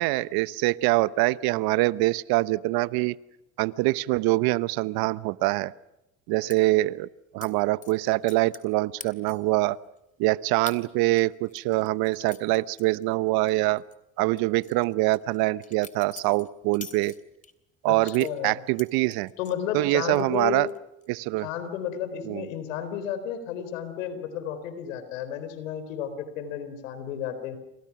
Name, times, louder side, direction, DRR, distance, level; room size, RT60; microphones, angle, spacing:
voice 1, 0.0-3.1 3.6-5.7 6.3-7.1 7.3-9.8 10.2-13.8 14.2-17.1 17.8-19.3 19.7-20.7 21.1-21.5 22.3-22.5, right 20 dB, 70° right, 18 dB, 1.0 m, -24 dB
sound 1, 6.5-6.6 7.4-7.5 7.8-8.7 9.0-9.5 10.0-10.1 10.7-10.8 11.2-13.5 13.8-14.0 14.4-17.5 18.0-19.6 20.0-20.4 20.7-21.1, left 4 dB, 20° left, 3.0 m, -45 dB
voice 2, 17.9-18.6 19.4-20.7 21.4-27.6, left 9 dB, 90° left, 11 dB, 4.1 m, -32 dB
29.5 x 26.5 x 6.0 m, 0.88 s
supercardioid pair, 80°, 38 cm